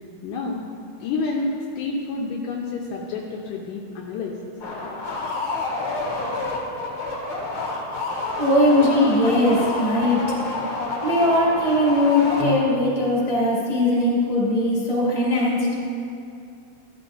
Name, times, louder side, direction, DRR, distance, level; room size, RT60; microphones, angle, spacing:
voice 1, 0.2-0.6 1.0-4.5, left 3 dB, 75° left, -1 dB, 2.1 m, -29 dB
sound 1, 4.6-12.9, left 3 dB, 50° left, 1.7 m, -28 dB
voice 2, 8.4-10.2 11.0-15.7, left 1 dB, 10° left, -6 dB, 2.0 m, -20 dB
13.5 x 12.5 x 2.7 m, 2.5 s
omnidirectional pair, 4.2 m